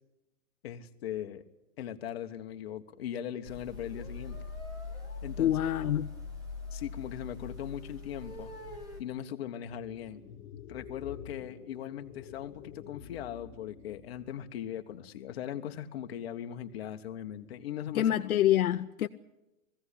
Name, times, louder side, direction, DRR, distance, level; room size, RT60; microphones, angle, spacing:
voice 1, 0.6-1.4 1.8-4.4 5.2-5.6 6.7-8.5 9.0-10.2 10.7-18.0, left 10 dB, 45° left, 1.3 m, -39 dB
sound 1, 3.4-9.0, left 4 dB, 10° right, 1.1 m, -42 dB
voice 2, 5.4-6.1 17.9-19.1, left 12 dB, 70° left, 0.8 m, -26 dB
sound 2, 9.6-14.4, left 8 dB, 15° left, 0.7 m, -49 dB
19.0 x 16.0 x 10.0 m
hypercardioid pair, 170°, 44 cm